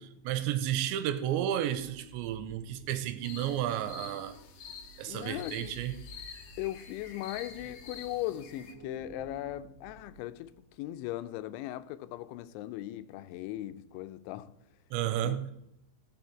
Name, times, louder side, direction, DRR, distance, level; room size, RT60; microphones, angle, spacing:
voice 1, 0.0-4.4 5.0-6.0 14.9-15.5, right 11 dB, 90° right, 3.0 m, -32 dB
sound 1, 1.7-10.7, right 3 dB, 30° right, 2.8 m, -53 dB
sound 2, 3.2-8.7, left 6 dB, 65° left, 2.4 m, -48 dB
voice 2, 5.1-5.8 6.6-14.6 15.2-15.5, left 15 dB, 85° left, 3.0 m, -38 dB
18.0 x 6.7 x 4.6 m
omnidirectional pair, 5.3 m